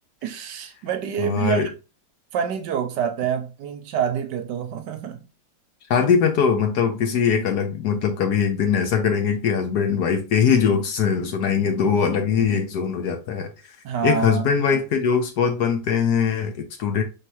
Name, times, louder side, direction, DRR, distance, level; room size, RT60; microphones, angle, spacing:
voice 1, 0.2-1.6 2.3-5.2 13.8-14.4 14.7-14.8, right 8 dB, 75° right, 1.1 m, -27 dB
voice 2, 1.2-1.7 5.9-13.5 14.0-17.0, left 6 dB, 65° left, 1.1 m, -21 dB
4.7 x 3.4 x 3.0 m
omnidirectional pair, 2.0 m